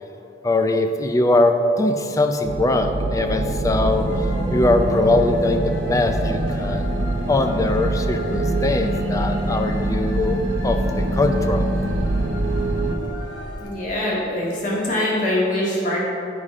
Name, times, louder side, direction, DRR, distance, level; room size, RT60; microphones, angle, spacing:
voice 1, 0.4-4.1 4.5-6.9 7.3-11.7, left 2 dB, 20° left, 6 dB, 0.4 m, -21 dB
sound 1, 2.4-13.0, right 1 dB, 85° right, 0.7 m, -24 dB
sound 2, 3.9-13.7, left 1 dB, 90° left, 1.0 m, -34 dB
voice 2, 13.6-16.0, left 1 dB, 45° left, -6 dB, 1.8 m, -23 dB
8.8 x 4.9 x 5.5 m, 2.7 s
head